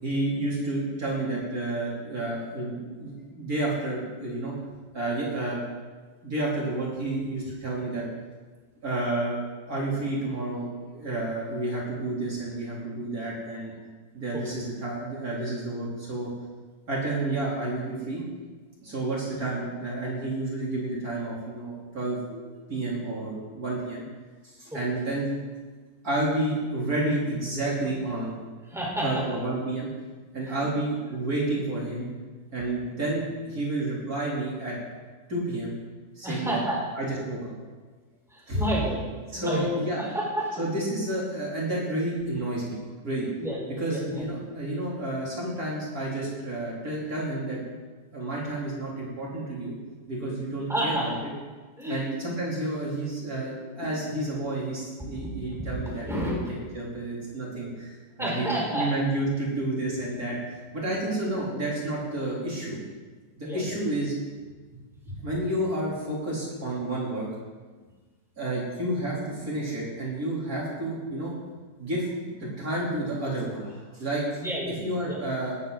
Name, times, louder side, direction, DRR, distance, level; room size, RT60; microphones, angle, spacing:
voice 1, 0.0-4.5 4.9-5.6 6.2-8.0 8.8-9.4 9.7-13.7 14.1-16.3 16.9-18.2 18.8-22.4 22.7-24.0 24.4-25.3 26.0-28.4 29.0-29.9 30.3-32.1 32.5-34.8 35.3-35.7 36.2-36.6 37.0-37.5 38.5-38.6 39.3-40.0 40.6-43.3 43.8-47.6 48.1-49.7 50.1-51.1 51.9-56.4 56.7-60.4 60.7-62.8 63.4-64.1 65.1-67.3 68.4-71.3 71.8-74.4 74.8-75.7, right 2 dB, 55° right, -5 dB, 4.2 m, -30 dB
voice 2, 28.7-29.1 30.4-30.6 36.2-36.8 38.3-39.0 39.3-39.7 40.0-40.6 43.4-44.3 50.7-51.1 51.8-52.0 55.7-56.3 58.2-58.9 63.4-63.8 74.4-74.8 75.0-75.2, right 1 dB, ahead, -4 dB, 4.6 m, -30 dB
19.0 x 14.0 x 4.1 m, 1.4 s
omnidirectional pair, 1.8 m